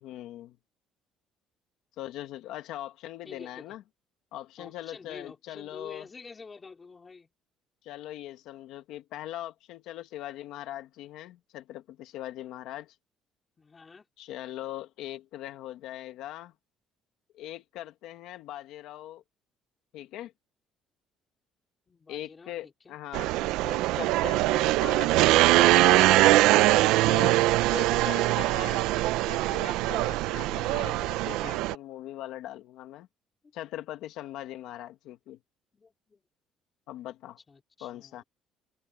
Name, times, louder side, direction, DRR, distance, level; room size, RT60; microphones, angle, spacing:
voice 1, 0.0-0.6 2.0-3.8 4.3-6.1 7.8-13.0 14.2-16.5 17.3-19.2 19.9-20.3 22.1-23.3 23.6-26.1 27.0-28.9 29.2-33.1 33.5-35.4 36.9-37.4 37.8-38.2, left 13 dB, 70° left, 1.3 m, -41 dB
voice 2, 3.2-3.7 4.6-7.3 13.6-14.1 21.9-23.0 27.5-28.6 33.4-33.5 35.7-36.2 37.5-38.2, left 4 dB, 20° left, 3.6 m, -48 dB
sound 1, 23.1-31.7, right 17 dB, 85° right, 0.5 m, -22 dB
cardioid pair, 175°, 0 cm